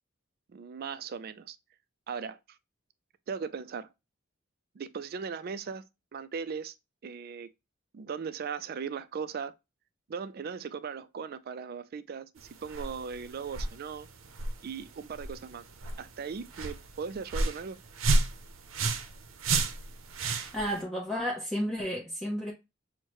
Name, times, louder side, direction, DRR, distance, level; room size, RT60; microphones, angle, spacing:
voice 1, 0.5-1.6 2.1-2.4 3.3-3.9 4.8-5.8 6.1-6.7 7.0-7.5 7.9-9.5 10.1-14.1 14.6-15.6 16.0-17.8, right 6 dB, 50° right, 0.3 m, -38 dB
sound 1, 12.4-20.8, right 3 dB, 90° right, 0.6 m, -32 dB
voice 2, 20.2-22.5, equal, ahead, 0.7 m, -32 dB
6.2 x 2.1 x 3.0 m
head